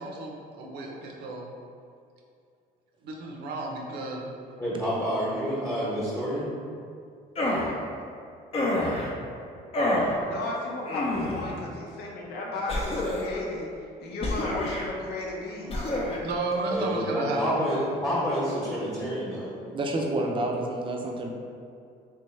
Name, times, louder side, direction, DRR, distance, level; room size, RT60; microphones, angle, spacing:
voice 1, 0.0-1.5 3.0-4.2 15.9-17.6, right 2 dB, 75° right, -1 dB, 0.7 m, -32 dB
voice 2, 4.6-6.5 16.7-19.5, equal, 15° left, -10 dB, 1.0 m, -28 dB
sound 1, 7.3-7.7 8.5-9.1 9.7-10.1 10.9-11.5 12.7-13.4 14.2-14.9 15.7-16.2, left 1 dB, 35° left, 0.7 m, -27 dB
voice 3, 10.3-13.7 14.0-15.8, left 2 dB, 75° left, -2 dB, 0.7 m, -34 dB
voice 4, 19.6-21.3, right 2 dB, 30° right, 1 dB, 0.5 m, -29 dB
3.4 x 3.2 x 3.1 m, 2.4 s
cardioid pair, 110°, 17 cm